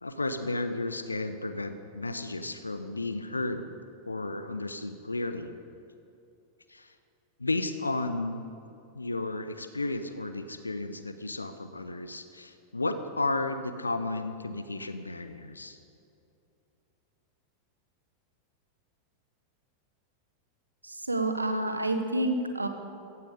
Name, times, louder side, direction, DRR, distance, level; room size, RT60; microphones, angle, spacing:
voice 1, 0.0-3.7 4.1-5.5 6.7-6.9 7.4-8.5 8.9-15.8, left 2 dB, 80° left, 10 dB, 0.9 m, -33 dB
voice 2, 20.8-22.7, right 1 dB, 80° right, 7 dB, 1.3 m, -28 dB
15.5 x 15.5 x 5.2 m, 2.7 s
figure-of-eight pair, 90°, 0 cm